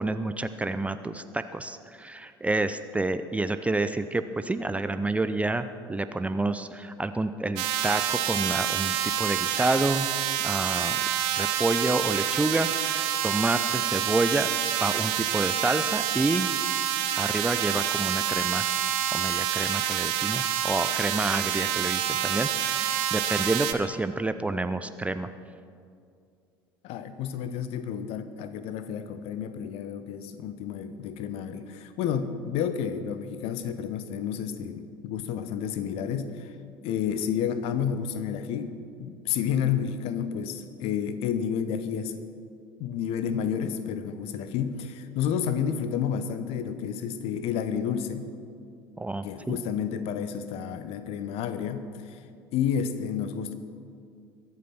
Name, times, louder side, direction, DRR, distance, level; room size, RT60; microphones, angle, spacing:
voice 1, 0.0-10.1 10.4-11.0 11.3-14.5 14.8-16.5 17.2-18.7 19.1-25.3 49.0-49.6, right 2 dB, 10° right, 11 dB, 0.6 m, -29 dB
sound 1, 7.6-23.7, right 11 dB, 55° right, 1.0 m, -27 dB
voice 2, 26.8-36.6 36.8-42.2 42.8-48.3 49.2-52.2 52.5-53.5, left 8 dB, 50° left, 11 dB, 1.1 m, -30 dB
22.5 x 8.4 x 6.0 m, 2.3 s
figure-of-eight pair, 65°, 13 cm